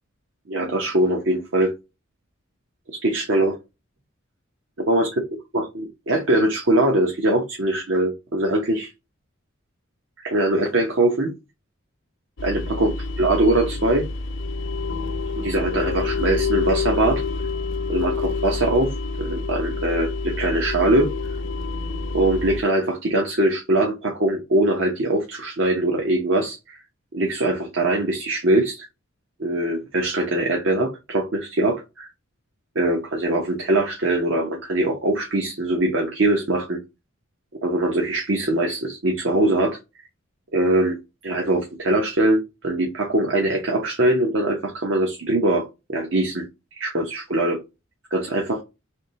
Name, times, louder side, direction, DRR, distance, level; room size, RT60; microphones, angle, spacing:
voice 1, 0.5-1.7 2.9-3.6 4.8-5.1 5.5-8.9 10.2-11.3 12.4-12.9 13.2-14.1 15.4-17.2 17.9-18.9 19.2-21.1 22.1-26.8 27.1-28.9 29.4-32.1 32.7-36.8 37.6-39.8 40.5-41.0 41.2-46.4 46.8-47.6 48.1-48.6, right 1 dB, 65° right, 1 dB, 1.0 m, -22 dB
sound 1, 12.4-22.6, left 4 dB, 60° left, 0.7 m, -27 dB
3.6 x 2.7 x 4.3 m, 0.24 s
head